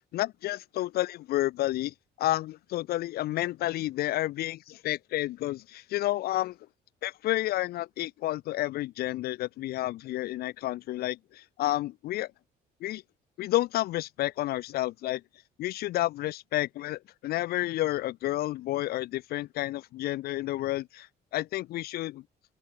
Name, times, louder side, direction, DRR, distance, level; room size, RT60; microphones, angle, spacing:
voice 1, 0.1-6.6 7.0-12.3 12.8-13.0 13.4-15.2 15.6-22.2, left 16 dB, 70° left, 0.5 m, -30 dB
open air
cardioid pair, 110°, 17 cm